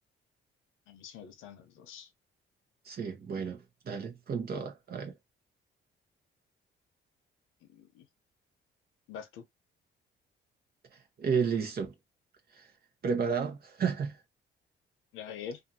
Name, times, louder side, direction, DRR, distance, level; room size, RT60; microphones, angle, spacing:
voice 1, 0.9-2.1 7.7-8.0 9.1-9.4 15.1-15.6, left 7 dB, 90° left, 0.7 m, -44 dB
voice 2, 2.8-5.1 11.2-11.9 12.5-12.7 13.0-14.2, right 6 dB, 50° right, 0.9 m, -32 dB
2.6 x 2.5 x 2.6 m
cardioid pair, 90°, 20 cm